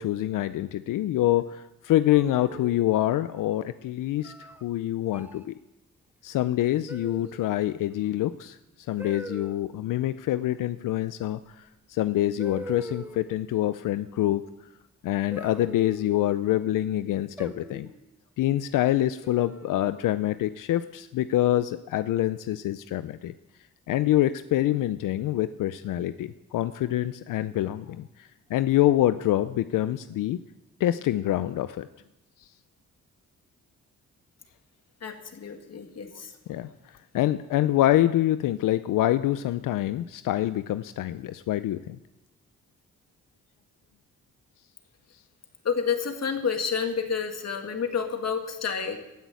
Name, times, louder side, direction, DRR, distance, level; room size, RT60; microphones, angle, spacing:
voice 1, 0.0-5.5 6.2-8.6 8.9-14.4 15.0-17.9 18.4-23.3 23.9-30.4 30.8-31.9 36.5-36.7 37.1-42.0, left 14 dB, 80° left, 13 dB, 0.5 m, -26 dB
sound 1, 2.1-3.0 4.2-4.6 5.1-5.4 6.9-7.5 9.0-9.6 11.5-11.6 12.4-13.4 15.3-16.4 17.4-18.0 19.2-19.8, right 1 dB, 5° right, 1.1 m, -41 dB
voice 2, 35.0-36.3 45.6-49.0, left 6 dB, 50° left, 6 dB, 1.9 m, -29 dB
15.5 x 6.3 x 9.1 m, 0.97 s
cardioid pair, 85°, 32 cm